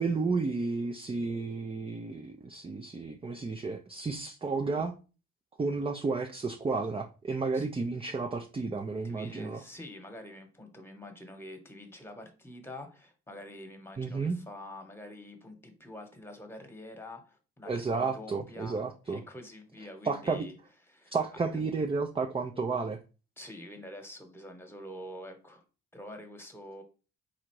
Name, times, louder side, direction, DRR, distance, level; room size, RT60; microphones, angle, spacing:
voice 1, 0.0-4.9 5.6-9.6 14.0-14.4 17.7-19.2 20.0-20.5 21.1-23.0, right 4 dB, 20° right, 5 dB, 0.5 m, -32 dB
voice 2, 9.0-20.6 20.8-21.4 23.4-25.6 25.9-26.8, left 1 dB, 10° left, 5 dB, 1.2 m, -46 dB
4.2 x 2.6 x 4.6 m, 0.33 s
cardioid pair, 90°, 30 cm